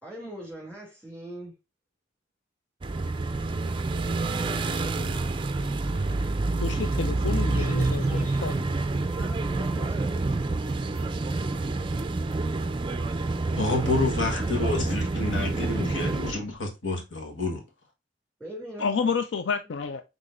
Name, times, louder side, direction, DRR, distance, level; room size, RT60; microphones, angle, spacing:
voice 1, 0.0-1.5 4.3-5.5 7.5-8.6 9.0-10.6 18.4-19.2, equal, 5° left, 2.6 m, -42 dB
sound 1, 2.8-16.3, right 3 dB, 25° right, 0.4 m, -28 dB
voice 2, 6.6-8.6 18.8-20.0, left 5 dB, 70° left, 0.4 m, -29 dB
voice 3, 13.6-17.6, left 3 dB, 85° left, 1.4 m, -29 dB
5.8 x 3.6 x 2.5 m
head